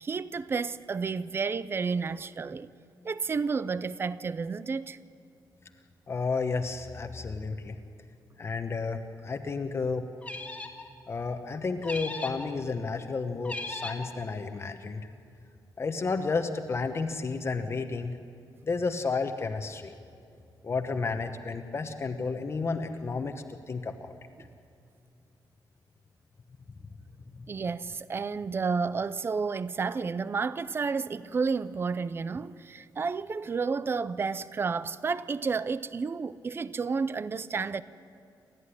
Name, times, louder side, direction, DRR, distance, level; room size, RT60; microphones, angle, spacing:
voice 1, 0.0-2.7 3.0-5.0 24.4-24.5 27.5-37.8, right 5 dB, 30° right, 0.5 m, -31 dB
voice 2, 6.1-7.8 8.4-10.0 11.1-15.1 15.8-18.2 18.6-20.0 20.6-24.1 27.3-27.4, left 4 dB, 35° left, 1.0 m, -32 dB
sound 1, 10.2-10.9 11.8-12.5 13.4-14.1, left 2 dB, 15° left, 1.8 m, -37 dB
29.0 x 13.5 x 9.9 m
wide cardioid pair, 175°, 8 cm